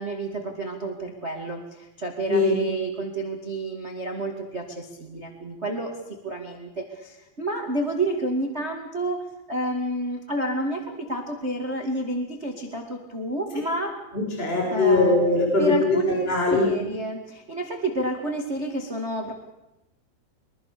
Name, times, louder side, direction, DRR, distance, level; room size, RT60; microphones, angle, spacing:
voice 1, 0.0-5.9 6.2-9.2 9.5-13.9 14.7-15.2 15.6-19.3, right 2 dB, 30° right, 3 dB, 1.1 m, -29 dB
voice 2, 14.1-16.0 16.3-16.7, left 3 dB, 10° left, -1 dB, 5.6 m, -21 dB
24.0 x 22.0 x 6.9 m, 0.93 s
omnidirectional pair, 5.5 m